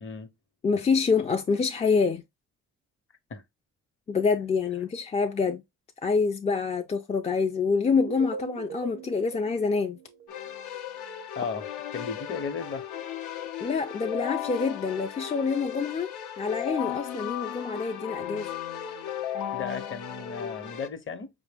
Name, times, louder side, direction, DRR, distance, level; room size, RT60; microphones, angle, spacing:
voice 1, 0.6-2.2 4.1-5.6 6.0-10.0 13.6-16.1 16.4-18.5, left 5 dB, 25° left, 0.3 m, -26 dB
sound 1, 8.0-10.9, right 7 dB, 50° right, 0.5 m, -41 dB
Keyboard (musical), 10.3-20.9, left 10 dB, 75° left, 0.6 m, -36 dB
voice 2, 11.9-12.9 19.5-21.3, left 5 dB, 40° left, 0.8 m, -35 dB
4.7 x 2.0 x 3.3 m
cardioid pair, 90°, 30 cm